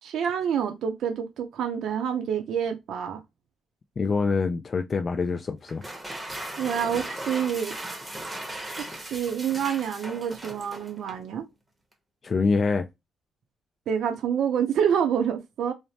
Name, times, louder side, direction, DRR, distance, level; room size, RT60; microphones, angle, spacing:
voice 1, 0.0-3.2 6.6-7.7 8.9-11.4 13.9-15.7, right 8 dB, 75° right, 0.5 m, -27 dB
voice 2, 4.0-5.8 12.2-12.9, left 4 dB, 40° left, 0.3 m, -25 dB
sound 1, 5.7-11.3, right 1 dB, 10° right, 0.8 m, -37 dB
3.1 x 2.0 x 2.7 m
cardioid pair, 90°, 0 cm